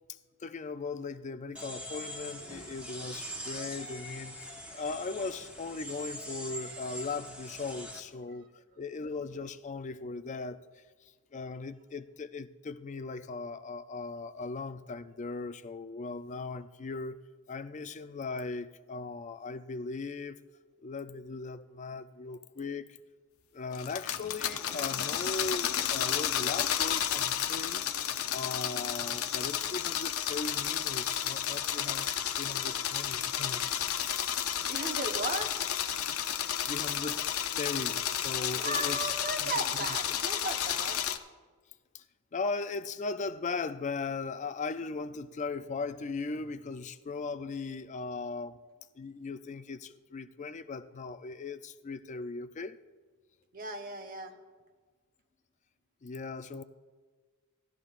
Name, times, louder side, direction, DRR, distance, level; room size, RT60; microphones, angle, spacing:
voice 1, 0.4-8.5 8.8-10.6 11.0-17.2 17.5-20.4 20.8-22.9 23.5-33.6 36.7-37.3 37.6-39.1 39.4-39.6 41.9-42.0 42.3-48.6 48.9-52.8 56.0-56.6, left 4 dB, 35° left, 0.4 m, -38 dB
sound 1, 1.5-8.0, equal, 5° right, 1.2 m, -43 dB
sound 2, 23.7-41.2, left 10 dB, 75° left, 0.6 m, -32 dB
voice 2, 34.7-35.5 38.6-41.0 53.5-54.3, right 2 dB, 40° right, 1.0 m, -36 dB
17.5 x 13.0 x 2.5 m
head